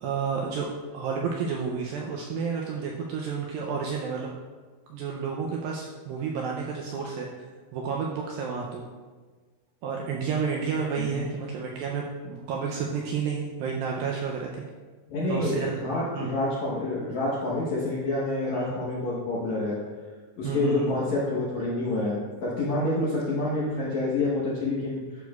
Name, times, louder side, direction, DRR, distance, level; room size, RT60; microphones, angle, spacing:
voice 1, 0.0-4.3 4.9-7.3 7.7-8.8 9.8-14.7 15.3-15.8 16.2-16.3 18.5-18.9 20.4-21.0, right 5 dB, 85° right, -1 dB, 2.1 m, -31 dB
voice 2, 15.1-19.8 20.4-25.0, left 2 dB, 70° left, -6 dB, 1.8 m, -28 dB
11.5 x 6.2 x 2.4 m, 1.4 s
omnidirectional pair, 4.8 m